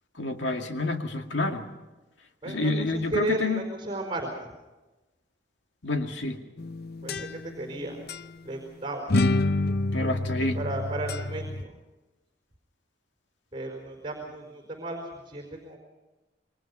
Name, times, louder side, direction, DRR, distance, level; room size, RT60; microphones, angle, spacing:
voice 1, 0.2-1.6 2.5-3.6 5.8-6.4 9.9-10.6, left 2 dB, 85° left, 4 dB, 2.2 m, -28 dB
voice 2, 2.4-4.5 7.0-8.0 8.4-9.2 10.0-11.7 13.5-15.8, right 1 dB, 30° right, 3 dB, 4.6 m, -34 dB
sound 1, 6.6-7.7 8.1-8.3 9.1-11.6, left 2 dB, 60° left, 0.7 m, -28 dB
27.5 x 22.5 x 5.6 m, 1.1 s
head